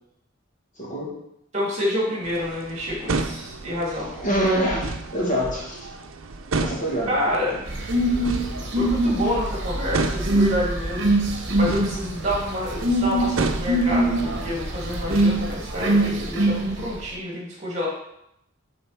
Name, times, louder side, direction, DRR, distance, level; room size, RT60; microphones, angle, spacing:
voice 1, 0.8-1.1 4.1-5.9 6.6-7.1, equal, 40° left, -3 dB, 1.9 m, -25 dB
voice 2, 1.5-4.1 6.5-6.6 7.1-7.7 8.7-11.1 11.5-17.9, left 1 dB, 35° right, -4 dB, 2.9 m, -28 dB
sound 1, 2.2-15.7, right 3 dB, 80° right, 0.6 m, -33 dB
sound 2, 7.7-17.0, right 1 dB, 60° right, 1.2 m, -23 dB
7.7 x 4.2 x 5.8 m, 0.79 s
head